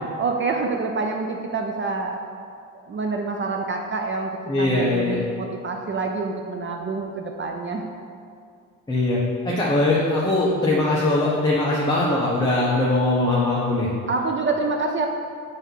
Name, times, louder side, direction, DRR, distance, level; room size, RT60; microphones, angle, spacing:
voice 1, 0.2-2.2 2.9-7.8 9.5-9.6 14.1-15.1, right 3 dB, 40° right, 2 dB, 0.5 m, -27 dB
voice 2, 4.5-5.2 8.9-13.9, left 2 dB, 15° left, -6 dB, 0.9 m, -21 dB
5.5 x 3.6 x 5.6 m, 2.3 s
cardioid pair, 105°, 32 cm